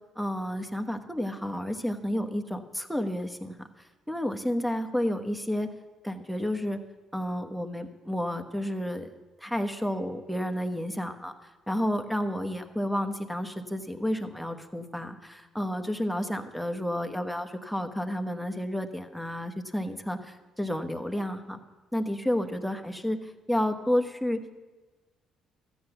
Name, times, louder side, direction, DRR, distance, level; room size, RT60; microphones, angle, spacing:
voice 1, 0.2-3.7 4.1-5.7 6.0-6.8 7.1-9.1 9.4-21.6 21.9-24.6, equal, ahead, 7 dB, 1.2 m, -31 dB
13.0 x 8.2 x 6.9 m, 1.3 s
supercardioid pair, 65°, 0 cm